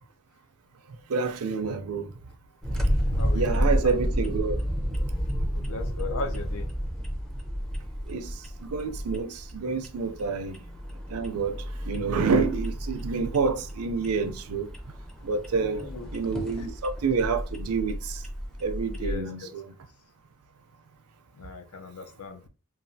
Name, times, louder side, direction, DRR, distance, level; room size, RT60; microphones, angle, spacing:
voice 1, 1.1-2.1 3.3-4.6 8.1-8.3 8.7-10.6 11.1-11.6 11.9-14.7 15.2-15.8 16.1-18.2 18.6-19.7, right 4 dB, 75° right, 0.5 m, -28 dB
sound 1, 2.6-19.1, equal, 5° left, 0.5 m, -31 dB
voice 2, 3.1-3.9 5.5-6.7 10.3-10.4 15.5-16.1 16.6-16.7 19.0-19.5 21.3-22.4, left 3 dB, 70° left, 0.6 m, -38 dB
3.1 x 2.3 x 2.6 m
head